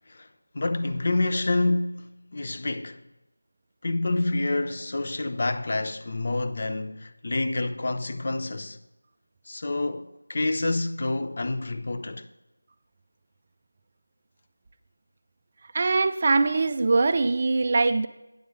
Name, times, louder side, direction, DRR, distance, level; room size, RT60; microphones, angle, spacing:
voice 1, 0.5-3.0 3.8-8.8 9.5-12.3, left 2 dB, 40° left, 0.5 m, -28 dB
voice 2, 15.7-18.1, right 3 dB, 30° right, 0.3 m, -22 dB
9.3 x 6.9 x 4.7 m
figure-of-eight pair, 170°, 0 cm